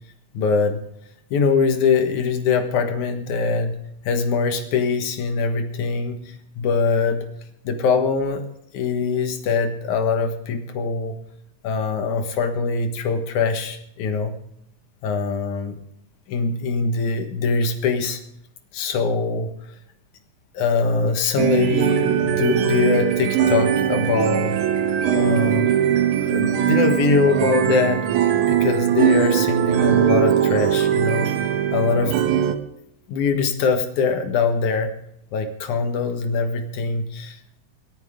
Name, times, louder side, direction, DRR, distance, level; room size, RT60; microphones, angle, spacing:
voice 1, 0.3-0.8 1.3-3.8 4.0-6.2 6.6-7.2 7.6-8.5 8.7-11.2 11.6-14.3 15.0-15.8 16.3-18.2 18.7-19.5 20.5-24.6 25.1-25.7 26.2-28.1 28.5-31.3 31.7-32.1 33.1-34.9 35.3-37.6, left 5 dB, 85° left, 6 dB, 2.9 m, -22 dB
sound 1, 21.4-32.6, right 10 dB, 85° right, 2.6 m, -20 dB
27.5 x 9.4 x 3.6 m, 0.76 s
omnidirectional pair, 3.3 m